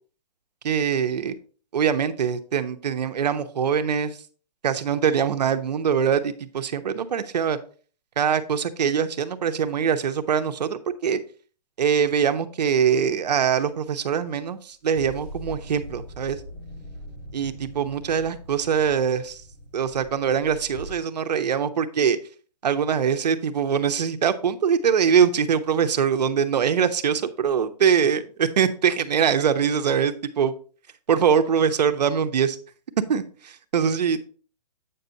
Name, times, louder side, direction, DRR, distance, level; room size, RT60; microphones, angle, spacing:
voice 1, 0.6-1.3 1.7-4.2 4.6-7.6 8.2-11.2 11.8-16.4 17.3-19.4 19.7-22.2 22.6-30.5 31.1-32.6 33.1-34.2, right 7 dB, 80° right, 9 dB, 0.9 m, -23 dB
sound 1, 12.9-13.5 14.9-21.0, equal, 30° left, 2.5 m, -41 dB
8.5 x 6.7 x 2.8 m, 0.40 s
hypercardioid pair, 170°, 21 cm